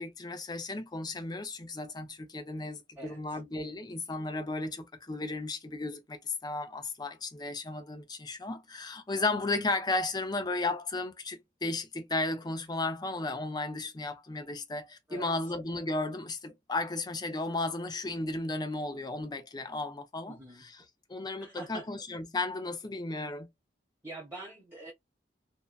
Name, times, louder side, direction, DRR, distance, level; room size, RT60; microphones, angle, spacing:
voice 1, 0.0-20.8 21.1-23.5, left 2 dB, 25° left, 0.5 m, -34 dB
voice 2, 3.0-3.4 15.1-15.3 20.3-20.7 21.4-21.9 24.0-24.9, right 2 dB, 15° right, 0.8 m, -45 dB
2.7 x 2.2 x 2.3 m
head